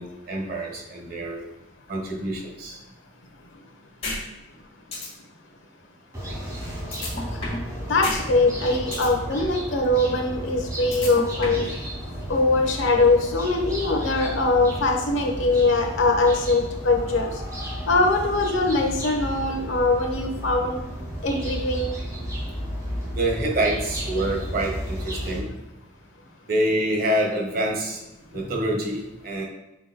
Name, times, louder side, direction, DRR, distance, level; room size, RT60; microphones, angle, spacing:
voice 1, 0.0-1.4 1.9-2.8 23.1-25.5 26.5-28.0 28.3-29.4, right 1 dB, 50° right, -1 dB, 1.5 m, -26 dB
sound 1, 4.0-4.2 4.5-4.6 4.9-5.1 6.9-7.7 8.0-8.2 8.5-9.1 10.9-11.7, left 2 dB, 30° left, 1.9 m, -30 dB
sound 2, 6.1-25.4, equal, 20° right, 2.3 m, -33 dB
voice 2, 7.8-11.7 12.3-17.3 17.9-20.8 21.2-21.9, left 2 dB, 80° left, 2 dB, 1.1 m, -22 dB
8.9 x 5.3 x 2.3 m, 0.96 s
head